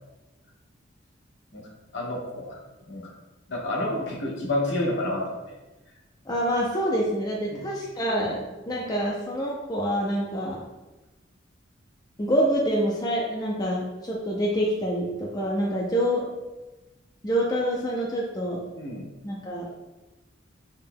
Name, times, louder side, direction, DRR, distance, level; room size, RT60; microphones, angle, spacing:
voice 1, 1.9-2.6 2.9-3.1 3.5-5.4 7.5-7.6 18.7-19.1, left 1 dB, 65° left, -3 dB, 1.2 m, -29 dB
voice 2, 6.3-10.6 12.2-16.2 17.2-18.6 19.2-19.7, equal, 20° left, -3 dB, 0.5 m, -26 dB
6.7 x 3.5 x 2.2 m, 1.1 s
head